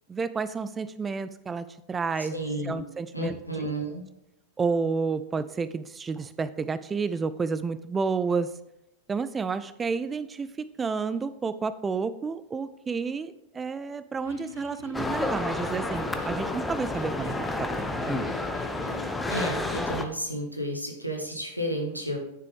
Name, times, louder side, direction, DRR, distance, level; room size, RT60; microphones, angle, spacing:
voice 1, 0.1-2.4 2.6-3.7 4.6-8.5 9.1-18.2, right 5 dB, 15° right, 14 dB, 0.3 m, -30 dB
voice 2, 2.3-2.7 3.1-4.0 19.3-22.2, equal, 90° right, 1 dB, 1.5 m, -32 dB
Electric guitar, 14.1-19.1, left 3 dB, 70° left, 1.5 m, -47 dB
sound 1, 14.9-20.1, left 2 dB, 10° left, 0.7 m, -30 dB
9.7 x 6.7 x 3.4 m, 0.84 s
figure-of-eight pair, 90°, 0 cm